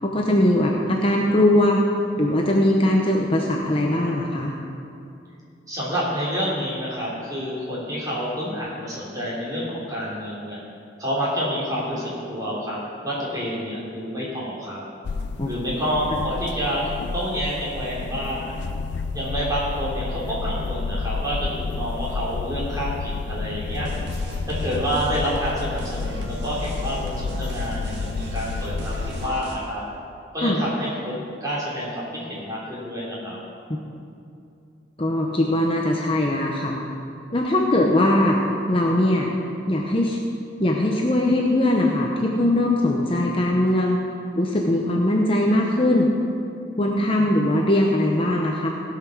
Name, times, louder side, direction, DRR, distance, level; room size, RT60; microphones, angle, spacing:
voice 1, 0.0-1.8 2.1-4.5 15.4-15.5 30.4-30.6 35.0-36.8 37.3-38.4 38.7-39.3 39.7-40.2 40.6-44.0 44.3-46.1 46.8-48.7, left 1 dB, 25° left, -1 dB, 0.8 m, -20 dB
voice 2, 5.7-10.6 11.0-14.8 15.4-18.6 19.1-23.9 24.4-29.8 30.3-31.1 31.4-33.4, equal, 20° right, -7 dB, 3.2 m, -28 dB
sound 1, 15.0-29.3, left 4 dB, 60° left, 0.4 m, -30 dB
sound 2, 23.7-29.6, equal, 60° right, 1.8 m, -37 dB
16.5 x 5.8 x 6.1 m, 2.5 s
head